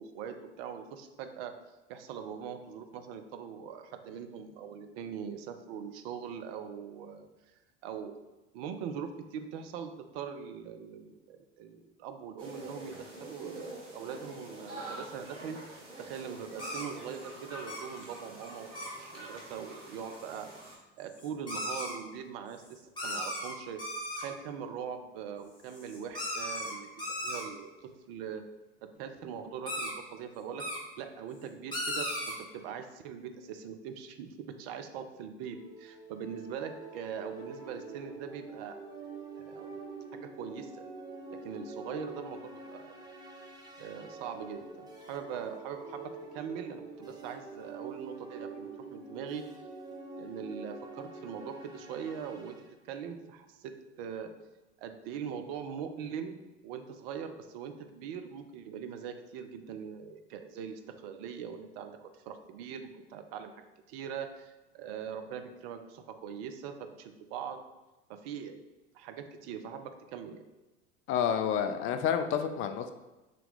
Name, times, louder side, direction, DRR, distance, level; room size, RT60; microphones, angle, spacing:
voice 1, 0.0-1.5 1.9-7.3 7.8-8.1 8.5-20.5 21.0-23.8 24.1-28.4 28.8-30.7 31.0-38.8 39.5-39.8 40.1-40.9 41.3-42.9 43.8-49.4 50.2-52.6 52.8-54.3 54.8-63.6 63.9-67.6 68.1-68.6 68.9-70.4, right 7 dB, 55° right, 7 dB, 0.6 m, -42 dB
sound 1, 12.4-20.8, right 1 dB, 90° right, 0.9 m, -46 dB
sound 2, 16.6-17.2 17.7-18.1 18.4-18.5 18.7-18.9 20.3-20.4 20.6-20.7 21.0-21.9 22.6-22.7 23.0-24.3 25.7-27.4 29.6-29.9 30.6-30.8 31.7-32.3, equal, 15° left, 1.3 m, -36 dB
sound 3, 35.4-52.7, right 3 dB, 10° right, 0.8 m, -46 dB
voice 2, 71.1-72.9, left 8 dB, 35° left, 8 dB, 0.4 m, -29 dB
3.2 x 2.8 x 4.0 m, 1.0 s
figure-of-eight pair, 75°, 35 cm